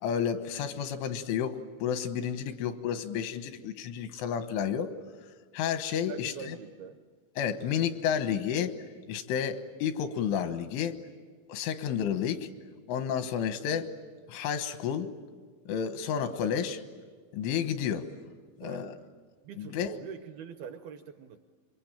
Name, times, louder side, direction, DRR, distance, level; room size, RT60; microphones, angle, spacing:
voice 1, 0.0-4.9 5.5-6.6 7.4-8.7 9.1-11.0 11.5-12.5 12.9-13.9 14.3-15.1 15.7-16.8 17.3-18.1 18.6-19.0 19.6-19.9, left 8 dB, 90° left, 9 dB, 3.7 m, -31 dB
voice 2, 6.1-7.0 18.6-19.0 19.4-21.4, right 7 dB, 75° right, 7 dB, 2.3 m, -43 dB
27.5 x 23.5 x 8.9 m, 1.5 s
omnidirectional pair, 5.4 m